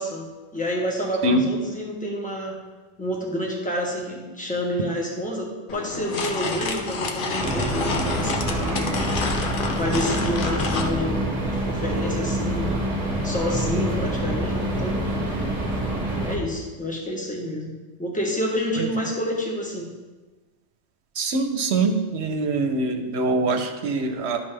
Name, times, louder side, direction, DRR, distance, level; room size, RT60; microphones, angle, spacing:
voice 1, 0.0-2.6 3.0-9.0 9.8-12.8 13.2-15.1 16.2-17.7 18.0-19.9, equal, 5° left, -2 dB, 1.2 m, -28 dB
sound 1, 5.7-10.9, left 4 dB, 50° left, 0.8 m, -29 dB
sound 2, 7.4-16.4, right 1 dB, 30° right, 1.2 m, -26 dB
voice 2, 21.2-24.4, right 2 dB, 65° right, 5 dB, 1.1 m, -23 dB
11.5 x 5.3 x 3.3 m, 1.2 s
omnidirectional pair, 1.2 m